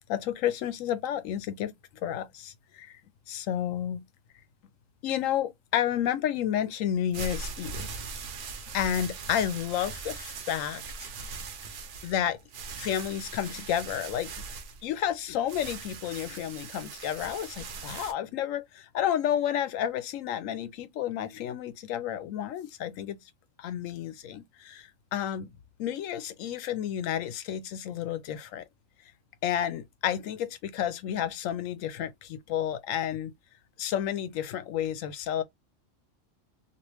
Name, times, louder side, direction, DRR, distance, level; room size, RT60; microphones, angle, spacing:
voice 1, 0.1-1.7 2.0-3.0 3.3-4.0 5.0-8.0 8.7-11.1 12.0-12.4 12.8-14.3 14.8-23.2 23.6-25.5 25.8-28.6 29.4-33.3 33.8-35.4, left 10 dB, 90° left, 1.0 m, -31 dB
sound 1, 6.9-18.1, right 4 dB, 70° right, 1.1 m, -40 dB
3.0 x 2.8 x 3.1 m
omnidirectional pair, 1.3 m